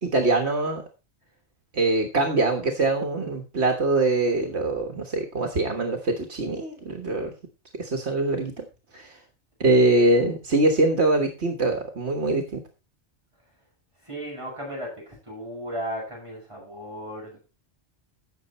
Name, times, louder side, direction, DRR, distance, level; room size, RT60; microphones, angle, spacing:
voice 1, 0.0-0.8 1.7-7.3 7.8-8.6 8.9-9.2 9.6-12.6, right 2 dB, 70° right, 4 dB, 1.8 m, -23 dB
voice 2, 14.0-17.4, equal, 25° right, -3 dB, 7.6 m, -35 dB
16.0 x 6.7 x 4.3 m, 0.31 s
omnidirectional pair, 1.2 m